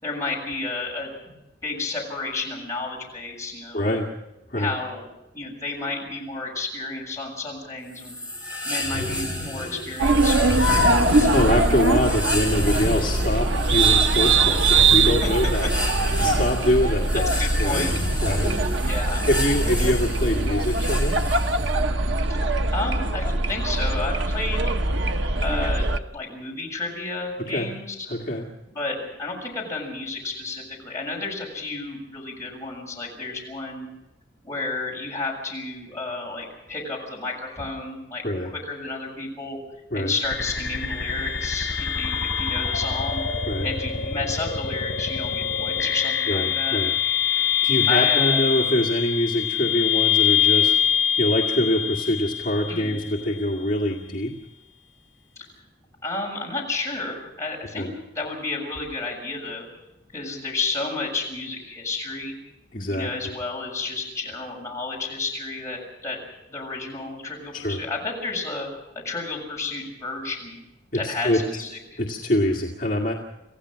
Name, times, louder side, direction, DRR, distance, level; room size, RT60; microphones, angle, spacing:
voice 1, 0.0-1.1 1.6-4.0 4.5-5.0 5.3-11.4 15.0-15.4 16.8-16.9 17.4-17.9 18.9-19.3 22.3-24.7 25.4-28.0 28.7-33.9 34.4-39.6 39.9-43.2 43.6-46.8 47.9-48.4 52.7-52.9 56.0-57.9 58.1-59.7 60.1-62.4 62.9-66.2 66.5-68.7 69.0-70.6 70.9-72.0, left 3 dB, 15° left, -2 dB, 6.9 m, -31 dB
voice 2, 3.7-4.1 4.5-4.8 11.3-15.7 16.2-17.3 17.6-17.8 18.2-18.5 18.8-19.0 19.3-21.2 27.4-27.7 28.1-28.5 38.2-38.5 39.9-40.1 43.5-43.7 46.3-46.9 47.3-54.3 57.8-57.9 62.7-63.3 67.5-67.8 70.9-71.6 72.0-73.1, left 1 dB, 45° left, -1 dB, 2.0 m, -24 dB
sound 1, 7.9-21.8, left 1 dB, 10° right, 5.1 m, -30 dB
sound 2, 10.0-26.0, right 2 dB, 75° right, 1.0 m, -22 dB
sound 3, 40.3-53.3, left 8 dB, 75° left, 5.0 m, -24 dB
27.5 x 16.0 x 6.3 m, 0.95 s
head